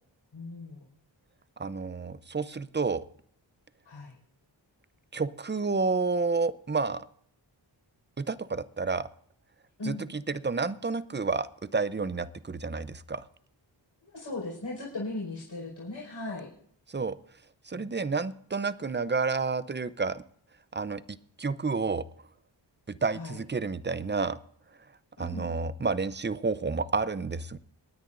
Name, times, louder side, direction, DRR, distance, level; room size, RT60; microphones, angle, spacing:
voice 1, 0.3-0.9 3.8-4.2 9.8-10.1 14.0-16.5 17.7-17.9 23.1-23.4 25.2-25.5, left 2 dB, 65° left, -6 dB, 5.3 m, -38 dB
voice 2, 1.6-3.0 5.1-7.1 8.2-9.1 9.8-13.3 16.9-17.2 17.6-20.2 20.7-22.0 22.9-24.4 25.2-27.6, right 4 dB, 25° right, 15 dB, 0.6 m, -30 dB
27.5 x 9.9 x 2.6 m, 0.62 s
wide cardioid pair, 70°, 46 cm